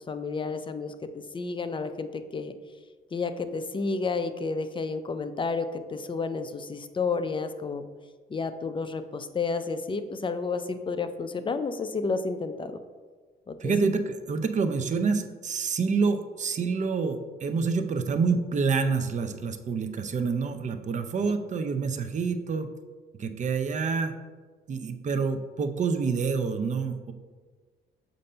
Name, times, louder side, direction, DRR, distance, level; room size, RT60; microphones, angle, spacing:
voice 1, 0.1-0.9 1.3-2.5 3.1-7.8 8.3-12.8 13.5-13.7, left 4 dB, 25° left, 10 dB, 0.4 m, -31 dB
voice 2, 13.6-22.7 23.2-24.2 24.7-27.1, right 5 dB, 40° right, 8 dB, 0.5 m, -27 dB
6.6 x 2.6 x 5.4 m, 1.5 s
cardioid pair, 90°, 20 cm